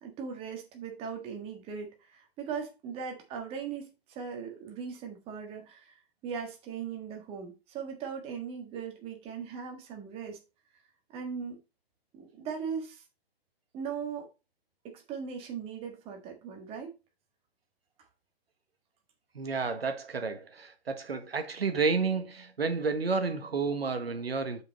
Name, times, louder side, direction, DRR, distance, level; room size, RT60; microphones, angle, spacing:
voice 1, 0.0-10.4 11.1-11.6 12.1-13.0 13.7-14.3 14.8-16.9, right 6 dB, 20° right, 1.7 m, -39 dB
voice 2, 19.3-24.6, right 4 dB, 75° right, 1.5 m, -31 dB
7.2 x 5.4 x 4.1 m
figure-of-eight pair, 135°, 30 cm